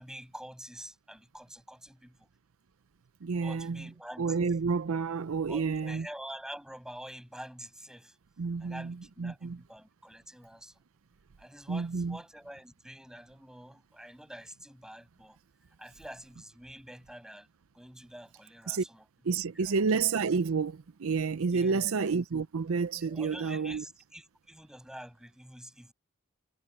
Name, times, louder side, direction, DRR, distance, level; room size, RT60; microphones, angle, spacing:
voice 1, 0.0-2.3 3.4-4.4 5.5-8.2 8.6-10.8 11.4-15.4 15.8-17.5 17.7-19.0 19.6-19.8 21.5-22.0 23.0-25.9, equal, 5° right, 6.7 m, -47 dB
voice 2, 3.2-3.8 4.2-6.1 8.4-9.6 11.7-12.2 18.7-18.9 19.2-23.8, right 5 dB, 70° right, 0.5 m, -30 dB
head